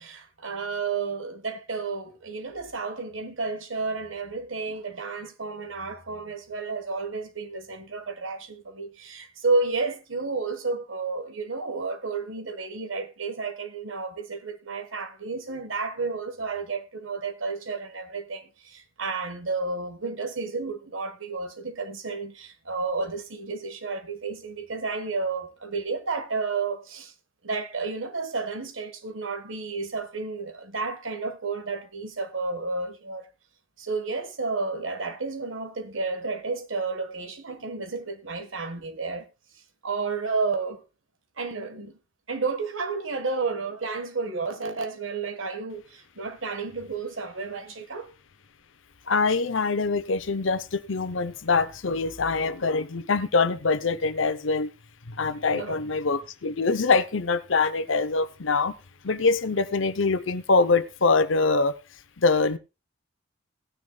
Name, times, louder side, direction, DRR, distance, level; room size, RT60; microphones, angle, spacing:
voice 1, 0.0-27.1 27.4-33.3 33.8-39.2 39.5-40.8 41.4-42.0 42.3-48.1 55.5-55.9, right 4 dB, 90° right, 1.5 m, -31 dB
voice 2, 49.1-54.7 55.1-58.7 59.0-61.7 62.2-62.6, left 4 dB, 80° left, 0.8 m, -24 dB
17.0 x 9.8 x 2.3 m
head